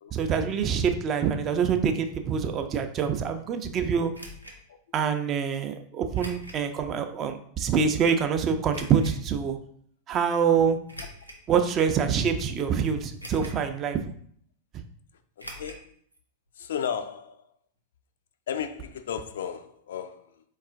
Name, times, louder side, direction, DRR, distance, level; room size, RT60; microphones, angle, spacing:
voice 1, 0.1-4.1 4.9-9.6 10.1-10.8 11.5-14.0, right 7 dB, 30° right, 0.4 m, -25 dB
sound 1, 4.1-4.6 6.1-6.6 7.2-7.3 8.7-9.2 10.9-11.5 12.1-12.2 13.2-13.7 13.9-14.0 15.4-15.8 16.1-16.2 16.5-16.6, equal, 90° left, 0.7 m, -42 dB
voice 2, 15.4-15.9 16.6-17.5 18.5-20.4, left 8 dB, 60° left, 0.3 m, -34 dB
4.2 x 2.4 x 3.6 m
figure-of-eight pair, 90°, 0 cm